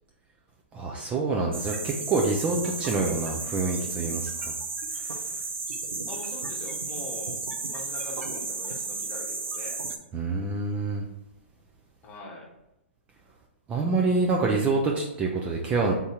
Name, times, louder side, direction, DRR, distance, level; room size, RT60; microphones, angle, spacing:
voice 1, 0.7-4.5 5.0-5.2 10.1-11.0 13.7-15.9, right 3 dB, 20° right, 0 dB, 0.4 m, -26 dB
sound 1, 1.5-10.0, right 4 dB, 80° right, 0.7 m, -33 dB
voice 2, 6.1-7.4 7.7-9.8 12.0-12.5, left 3 dB, 25° left, -2 dB, 1.1 m, -42 dB
3.7 x 2.7 x 4.5 m, 0.90 s
hypercardioid pair, 130°, 7 cm